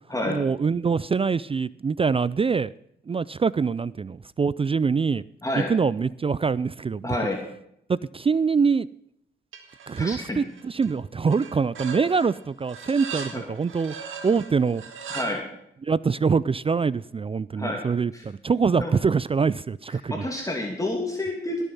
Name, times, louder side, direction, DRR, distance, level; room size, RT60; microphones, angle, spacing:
voice 1, 0.2-2.7 3.1-5.2 5.5-7.1 7.9-8.9 9.9-13.9 14.2-14.8 15.8-20.2, right 5 dB, 30° right, 20 dB, 0.4 m, -24 dB
voice 2, 7.0-7.4 10.0-10.4 13.3-13.4 15.1-15.4 17.5-17.8 18.1-18.2 18.8-18.9 20.1-21.6, left 1 dB, 15° left, 1 dB, 2.6 m, -29 dB
sound 1, 9.5-10.1 10.4-10.9 11.3-15.3, right 6 dB, 80° right, 1.8 m, -39 dB
18.0 x 7.1 x 5.5 m, 0.74 s
cardioid pair, 60°, 20 cm